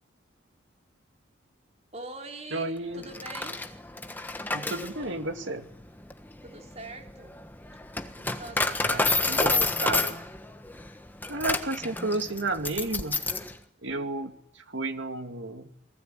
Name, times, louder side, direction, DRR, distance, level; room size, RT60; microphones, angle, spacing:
voice 1, 1.9-3.6 6.4-7.4 8.2-9.6, right 2 dB, 35° right, 2 dB, 4.1 m, -43 dB
voice 2, 2.5-3.0 4.5-5.7 8.8-10.2 11.3-13.2 13.8-15.7, right 2 dB, 70° right, 6 dB, 2.4 m, -32 dB
Coin (dropping), 3.0-13.5, left 3 dB, 10° left, 1.3 m, -30 dB
28.5 x 19.5 x 9.2 m, 0.78 s
head